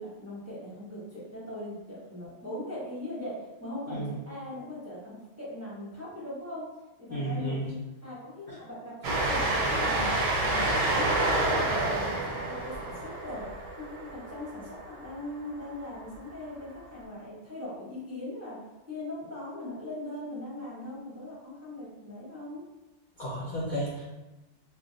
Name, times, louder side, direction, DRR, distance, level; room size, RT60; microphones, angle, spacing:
voice 1, 0.0-6.7 7.0-7.7 8.0-10.1 10.4-13.5 13.8-18.6 18.9-22.6, left 1 dB, 15° right, -8 dB, 0.8 m, -40 dB
voice 2, 7.1-7.7 8.5-8.6 23.2-24.1, right 1 dB, 55° left, -6 dB, 0.6 m, -33 dB
Train, 9.0-15.2, right 2 dB, 55° right, 0.6 m, -28 dB
2.4 x 2.1 x 3.7 m, 1.1 s
omnidirectional pair, 1.3 m